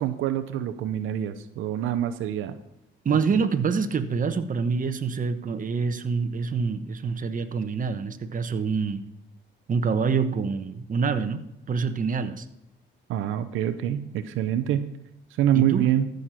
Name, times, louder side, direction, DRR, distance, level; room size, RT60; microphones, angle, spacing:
voice 1, 0.0-2.6 13.1-14.9 15.4-16.1, right 11 dB, 85° right, 10 dB, 0.8 m, -25 dB
voice 2, 3.0-9.1 9.7-12.5 15.5-15.9, right 5 dB, 40° right, 9 dB, 1.2 m, -26 dB
14.0 x 6.7 x 5.9 m, 0.86 s
cardioid pair, 90°, 20 cm